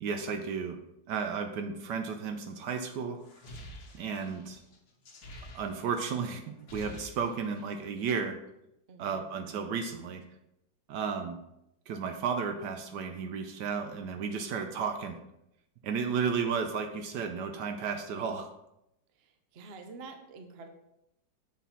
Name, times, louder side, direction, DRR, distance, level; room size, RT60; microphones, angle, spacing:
voice 1, 0.0-0.8 1.1-3.2 3.9-4.6 5.5-8.4 9.0-10.2 10.9-11.4 11.9-15.2 15.8-18.5, right 6 dB, 70° right, 6 dB, 1.2 m, -33 dB
sound 1, 3.2-6.1 6.4-7.8, left 1 dB, 60° left, 1.6 m, -48 dB
voice 2, 8.9-9.3 19.2-20.7, right 4 dB, 50° right, 6 dB, 0.7 m, -48 dB
7.2 x 4.3 x 5.6 m, 0.84 s
omnidirectional pair, 2.0 m